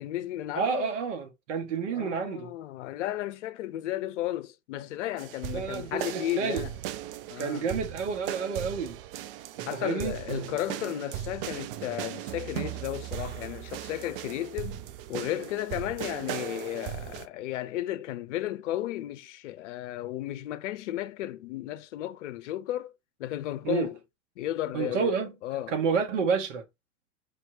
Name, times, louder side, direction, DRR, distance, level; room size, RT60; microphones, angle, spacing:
voice 1, 0.0-0.9 1.9-6.7 7.3-7.7 9.7-14.8 15.1-22.9 23.2-24.0 24.4-25.8, left 14 dB, 60° left, 0.7 m, -34 dB
voice 2, 0.5-2.5 5.5-6.6 7.4-9.0 9.6-10.2 23.6-23.9 24.7-25.3 25.7-26.6, right 6 dB, 65° right, 1.6 m, -29 dB
sound 1, 5.2-17.3, right 12 dB, 45° right, 0.6 m, -38 dB
5.2 x 3.0 x 2.8 m
hypercardioid pair, 100°, 40 cm